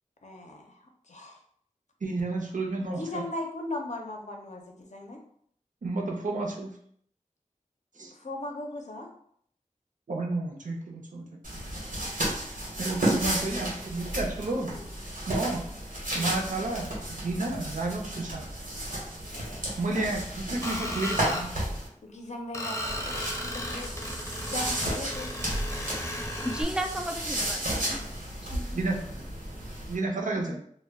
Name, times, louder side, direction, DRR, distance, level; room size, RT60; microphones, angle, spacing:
voice 1, 0.2-1.4 2.8-5.2 8.1-9.1 14.7-14.9 16.2-16.4 19.3-19.6 22.0-23.9 24.4-25.3 25.6-26.1, left 1 dB, 60° left, 2 dB, 0.5 m, -39 dB
voice 2, 2.0-3.2 5.8-6.8 8.0-8.1 10.1-11.3 11.5-11.7 12.8-14.7 15.3-15.6 16.1-18.4 19.8-21.5 28.7-29.2 29.9-30.6, right 2 dB, 70° right, 0 dB, 0.5 m, -31 dB
sound 1, 11.4-21.9 22.9-29.9, right 1 dB, 85° right, 0.9 m, -33 dB
Screech, 20.6-21.4 22.5-26.6, left 1 dB, 20° left, 0.7 m, -35 dB
voice 3, 26.4-28.0 28.4-28.8 30.4-30.6, right 1 dB, 5° right, 4 dB, 0.3 m, -34 dB
2.2 x 2.1 x 3.4 m, 0.65 s
wide cardioid pair, 60°, 14 cm